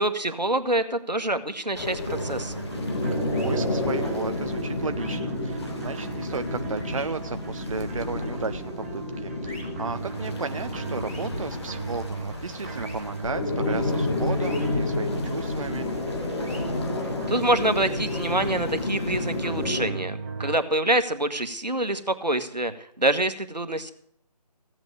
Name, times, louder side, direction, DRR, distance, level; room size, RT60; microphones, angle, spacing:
voice 1, 0.0-2.5 17.3-23.9, right 1 dB, 85° right, 9 dB, 1.5 m, -26 dB
sound 1, 1.8-19.9, left 2 dB, 40° left, 2.0 m, -30 dB
sound 2, 2.0-20.6, right 4 dB, 20° right, 0.9 m, -37 dB
voice 2, 3.1-15.9, right 4 dB, 50° right, 10 dB, 0.5 m, -34 dB
sound 3, 3.3-3.5 5.0-5.2 6.8-7.0 9.4-9.6 11.0-11.3 12.7-12.9 14.4-14.6 16.4-16.6 18.0-18.3, left 1 dB, 10° left, 2.1 m, -44 dB
15.5 x 8.1 x 6.6 m, 0.70 s
figure-of-eight pair, 155°, 21 cm